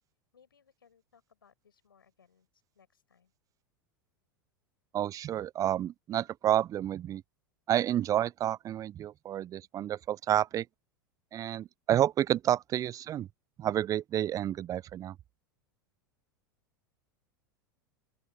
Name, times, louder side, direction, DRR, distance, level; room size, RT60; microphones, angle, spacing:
voice 1, 0.3-3.3, left 7 dB, 80° left, 7.7 m, -65 dB
voice 2, 4.9-7.2 7.7-10.7 11.3-13.3 13.6-15.2, right 11 dB, 30° right, 0.5 m, -30 dB
open air
hypercardioid pair, 90°, 12 cm